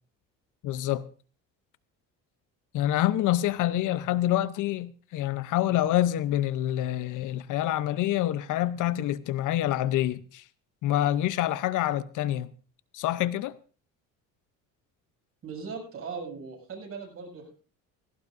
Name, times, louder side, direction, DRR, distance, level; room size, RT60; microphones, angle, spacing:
voice 1, 0.6-1.0 2.7-10.4 10.8-12.5 12.9-13.5, left 13 dB, 65° left, 0.8 m, -27 dB
voice 2, 15.4-17.5, right 5 dB, 45° right, 7.4 m, -39 dB
18.0 x 17.0 x 2.6 m
cardioid pair, 105°, 33 cm